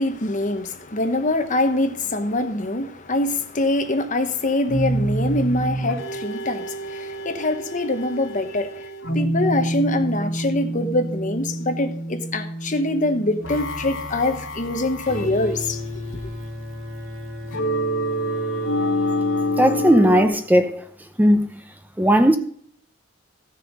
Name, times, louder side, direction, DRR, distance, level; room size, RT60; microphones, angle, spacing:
voice 1, 0.0-8.9 9.1-15.8, left 2 dB, 40° left, 1.1 m, -24 dB
sound 1, 4.7-20.3, equal, 85° left, 2.9 m, -28 dB
sound 2, 15.1-20.0, left 2 dB, 80° right, 2.7 m, -33 dB
voice 2, 19.6-20.7 21.2-21.5 22.0-22.4, equal, 10° right, 0.7 m, -16 dB
15.5 x 6.7 x 5.3 m
head